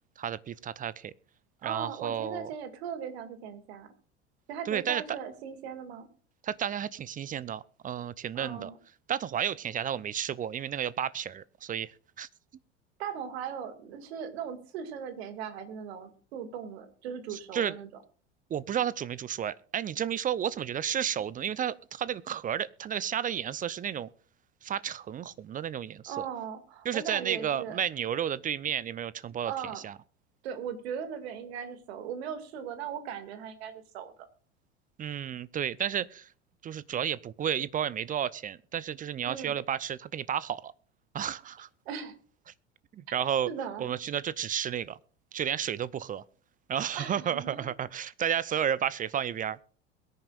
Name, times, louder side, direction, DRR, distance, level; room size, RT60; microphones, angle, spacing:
voice 1, 0.2-1.1 1.6-2.5 4.7-5.0 6.4-8.7 9.1-12.3 17.3-17.8 18.5-24.1 24.6-26.3 26.8-29.5 29.8-29.9 35.0-36.3 36.6-40.7 41.1-41.7 42.9-43.5 43.8-45.0 45.3-46.2 46.7-49.6, right 9 dB, 25° right, 21 dB, 0.5 m, -32 dB
voice 2, 1.6-3.9 4.5-6.1 8.3-8.8 13.0-17.9 26.1-27.8 29.4-29.8 30.4-34.1 39.3-39.6 41.9-42.2 43.5-43.9 46.9-47.6, right 8 dB, 65° right, 9 dB, 2.3 m, -38 dB
22.5 x 10.0 x 2.4 m, 0.43 s
figure-of-eight pair, 75°, 34 cm